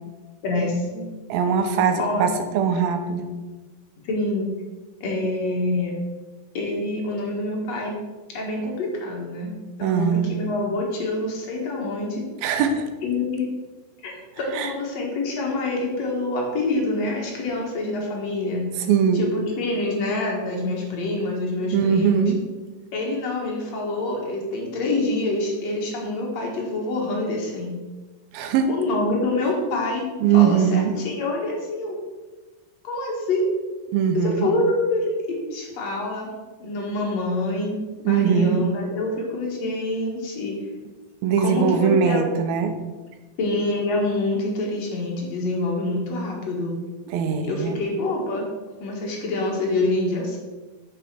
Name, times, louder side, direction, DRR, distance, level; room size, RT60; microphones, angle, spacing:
voice 1, 0.4-1.1 2.0-2.3 4.0-4.5 5.0-5.9 6.5-7.9 8.3-9.5 9.8-12.2 13.0-13.4 14.0-18.7 19.1-22.3 22.9-27.7 28.7-30.0 30.3-32.0 32.8-33.5 34.1-36.3 36.6-37.8 38.0-40.6 41.4-42.2 43.4-46.7 47.4-48.5 48.8-50.4, left 2 dB, 55° left, -1 dB, 2.4 m, -26 dB
voice 2, 1.3-3.3 9.8-10.3 12.4-12.9 14.5-14.7 18.9-19.3 21.7-22.4 28.3-28.7 30.2-31.0 33.9-34.5 38.1-38.6 41.2-42.8 47.1-47.8, right 7 dB, 85° right, 7 dB, 2.6 m, -21 dB
6.6 x 6.4 x 6.1 m, 1.2 s
omnidirectional pair, 4.2 m